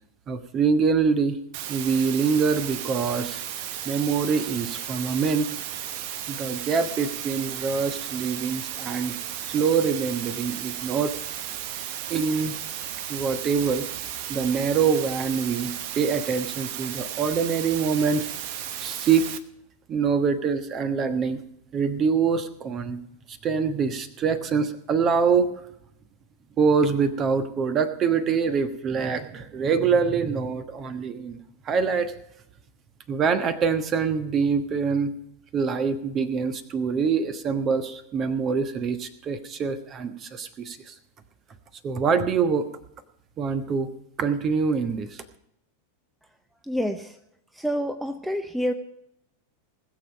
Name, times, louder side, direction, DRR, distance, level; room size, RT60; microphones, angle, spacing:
voice 1, 0.3-1.4 1.7-3.4 3.8-5.5 6.3-9.1 9.5-11.2 12.1-12.5 13.1-13.9 14.3-18.3 18.8-19.3 19.9-21.4 21.7-23.0 23.3-25.6 26.6-31.4 31.6-32.1 33.1-35.1 35.5-40.9 41.8-42.7 43.4-43.9 44.2-45.2, right 5 dB, 30° right, 11 dB, 1.2 m, -25 dB
sound 1, 1.5-19.4, right 10 dB, 45° right, 0.9 m, -34 dB
voice 2, 46.6-47.2 47.5-48.7, equal, 5° right, 7 dB, 0.8 m, -28 dB
20.0 x 7.2 x 5.3 m, 0.77 s
figure-of-eight pair, 90°, 0 cm